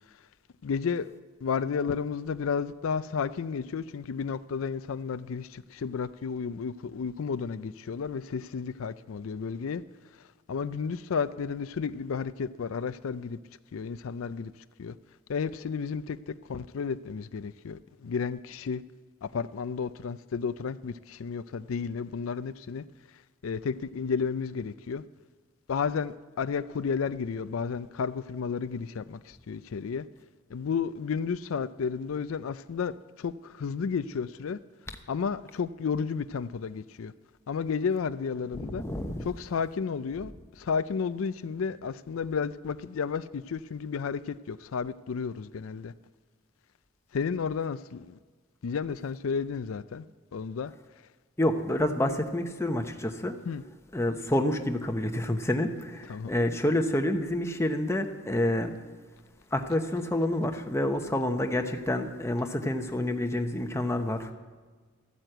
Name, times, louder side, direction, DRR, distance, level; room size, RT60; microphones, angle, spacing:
voice 1, 0.6-1.1 1.4-9.8 10.5-13.4 13.7-14.5 14.8-15.0 15.3-18.8 19.2-22.8 23.4-25.0 25.7-30.1 30.5-34.6 35.1-37.1 37.5-38.8 39.2-40.3 40.6-45.9 47.1-48.2 48.6-50.0 50.3-50.7 53.5-53.6 56.1-56.3, left 6 dB, 90° left, 0.4 m, -32 dB
voice 2, 38.5-39.3 51.4-53.4 53.9-58.7 59.5-64.3, left 1 dB, 15° left, 0.9 m, -28 dB
13.5 x 9.1 x 7.8 m
head